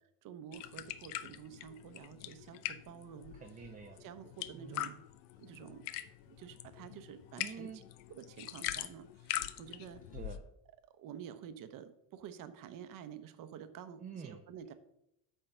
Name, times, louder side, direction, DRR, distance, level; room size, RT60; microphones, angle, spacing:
voice 1, 0.2-3.3 4.0-5.0 5.4-5.8 6.3-7.8 8.1-10.0 11.0-14.7, right 8 dB, 50° right, 11 dB, 0.8 m, -49 dB
sound 1, 0.5-10.4, left 14 dB, 85° left, 0.7 m, -43 dB
voice 2, 3.3-4.0 4.5-5.0 7.4-7.8 10.1-10.4 14.0-14.4, right 6 dB, 20° right, 5 dB, 0.5 m, -47 dB
8.9 x 3.7 x 6.7 m, 0.80 s
cardioid pair, 140°, 43 cm